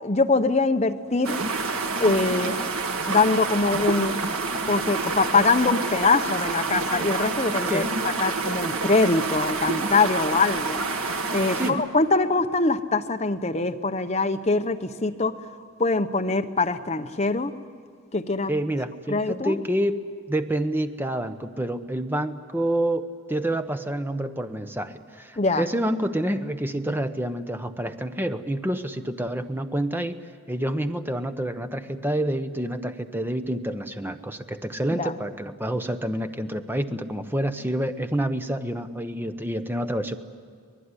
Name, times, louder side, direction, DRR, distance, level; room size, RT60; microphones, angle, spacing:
voice 1, 0.0-1.4 2.0-2.6 3.1-4.2 4.6-7.8 8.2-10.8 11.3-15.3 15.8-17.5 18.1-18.5 19.1-19.5 25.4-25.6 34.9-35.1, left 3 dB, 30° left, 7 dB, 0.9 m, -23 dB
sound 1, 1.2-11.7, right 3 dB, 80° right, 1.9 m, -28 dB
voice 2, 11.6-11.9 18.5-20.0 20.3-30.1 30.5-40.2, right 1 dB, 10° right, 8 dB, 0.9 m, -28 dB
24.5 x 19.5 x 9.8 m, 2.1 s
head